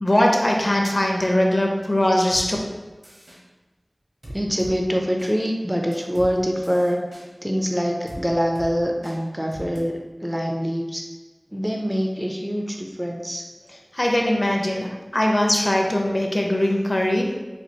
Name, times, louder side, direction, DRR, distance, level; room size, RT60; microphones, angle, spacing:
voice 1, 0.0-2.6 13.9-17.4, left 1 dB, 40° left, 0 dB, 0.6 m, -21 dB
sound 1, 2.3-2.5 3.0-3.4 4.2-4.7 5.2-5.3 5.9-6.3 6.6-7.2 8.1-8.2 8.6-8.7 9.0-9.2 9.5-9.8, equal, 65° right, 1.1 m, -39 dB
voice 2, 4.3-7.0 7.4-11.0 11.5-13.4, equal, 5° right, 1 dB, 0.4 m, -24 dB
4.3 x 2.4 x 2.7 m, 1.2 s
wide cardioid pair, 50°, 0 cm